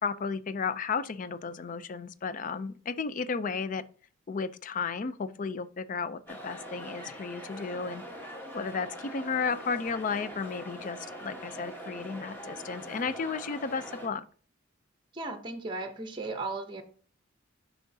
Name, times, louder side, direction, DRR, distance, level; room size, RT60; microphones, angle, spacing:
voice 1, 0.0-3.8 4.3-8.0 8.5-14.2, left 5 dB, 40° left, 0.4 m, -33 dB
sound 1, 6.3-14.1, equal, 10° left, 1.2 m, -43 dB
voice 2, 15.1-16.8, right 3 dB, 25° right, 0.7 m, -36 dB
8.2 x 5.6 x 2.7 m
head